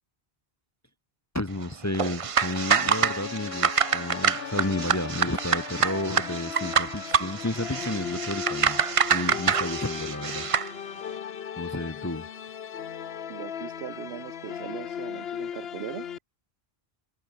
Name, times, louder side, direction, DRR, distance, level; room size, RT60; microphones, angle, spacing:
voice 1, 1.3-8.8 9.1-10.5 11.6-12.3, left 1 dB, 15° left, 0.9 m, -32 dB
sound 1, 1.9-10.7, right 7 dB, 40° right, 0.6 m, -26 dB
sound 2, 2.4-16.2, left 8 dB, 75° left, 1.1 m, -37 dB
voice 2, 13.3-16.1, right 11 dB, 80° right, 1.0 m, -39 dB
omnidirectional pair, 1.1 m